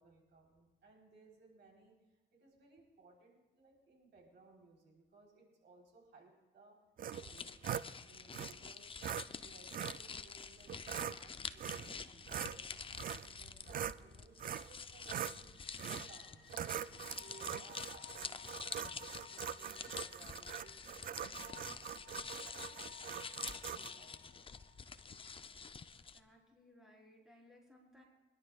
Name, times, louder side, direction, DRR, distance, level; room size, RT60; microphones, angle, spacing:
voice 1, 0.0-6.8 7.1-15.5 16.0-21.6 22.1-24.5, right 3 dB, 60° right, -1 dB, 3.8 m, -63 dB
sound 1, 7.0-7.9 8.3-8.5 9.0-9.2 9.7-10.0 10.7-11.2 11.6-12.0 12.3-14.0 14.4-14.7 15.0-15.4 15.8-16.1 16.5-23.9, right 9 dB, 45° right, 0.4 m, -42 dB
sound 2, 7.1-26.2, left 5 dB, 25° left, 0.6 m, -48 dB
sound 3, 10.2-26.1, left 10 dB, 85° left, 1.8 m, -62 dB
voice 2, 25.8-28.0, left 1 dB, 5° right, -3 dB, 4.1 m, -63 dB
24.5 x 11.5 x 2.4 m, 1.2 s
cardioid pair, 90°, 20 cm